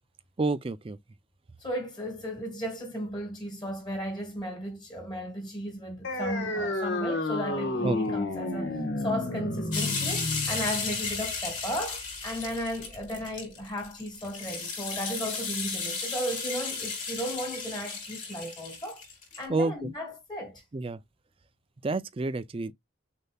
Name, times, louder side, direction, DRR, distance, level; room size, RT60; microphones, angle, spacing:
voice 1, 0.4-1.0 7.8-8.0 19.5-19.9 20.7-21.0 21.8-22.7, right 3 dB, 30° right, 0.4 m, -29 dB
voice 2, 1.6-19.0 19.4-20.6, equal, 20° left, 1.6 m, -35 dB
sound 1, 6.0-13.1, left 2 dB, 65° left, 1.3 m, -32 dB
sound 2, 9.7-19.4, left 4 dB, 40° left, 3.2 m, -34 dB
6.5 x 2.8 x 2.3 m
head